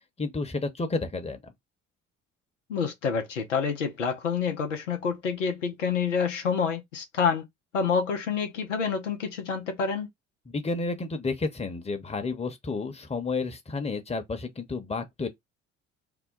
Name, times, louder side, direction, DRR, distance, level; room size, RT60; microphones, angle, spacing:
voice 1, 0.2-1.5 10.5-15.3, left 3 dB, 15° left, 1.0 m, -31 dB
voice 2, 2.7-7.4 7.7-10.1, left 6 dB, 80° left, 0.7 m, -28 dB
2.9 x 2.2 x 3.7 m
figure-of-eight pair, 50°, 37 cm